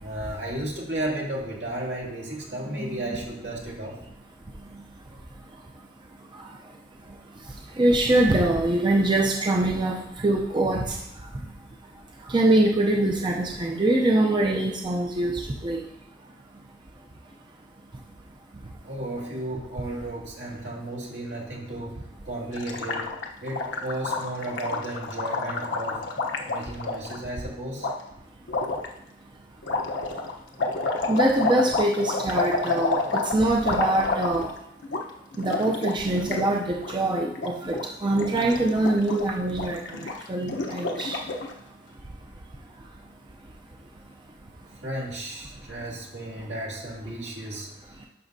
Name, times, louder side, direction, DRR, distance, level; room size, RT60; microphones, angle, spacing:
voice 1, 0.0-4.0 18.9-22.0 22.2-23.1 23.4-26.0 26.5-27.9 44.8-47.9, right 1 dB, 70° right, -3 dB, 2.3 m, -34 dB
voice 2, 7.8-11.0 12.3-15.8 31.1-33.0 33.3-34.5 35.4-39.8 40.3-41.2, right 1 dB, 25° right, 0 dB, 0.5 m, -23 dB
Gurgling, 22.5-27.2 27.8-27.9 28.5-28.9 29.6-34.6 34.8-35.0 35.3-36.5 36.7-36.9 37.3-37.8 38.1-41.5, left 3 dB, 85° left, 0.9 m, -29 dB
11.0 x 6.0 x 2.7 m, 0.79 s
head